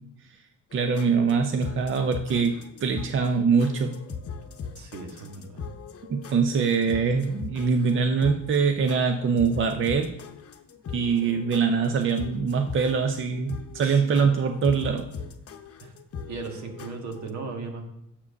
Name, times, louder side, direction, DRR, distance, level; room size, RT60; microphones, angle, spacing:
sound 1, 0.7-17.3, left 6 dB, 50° left, 0.8 m, -40 dB
voice 1, 0.7-3.9 6.1-10.1 10.9-15.1, right 5 dB, 40° right, 6 dB, 0.6 m, -23 dB
voice 2, 4.8-5.7 13.8-14.0 15.8-15.9 16.3-17.8, right 4 dB, 70° right, 3 dB, 1.6 m, -37 dB
7.1 x 4.8 x 6.4 m, 0.79 s
cardioid pair, 90°, 30 cm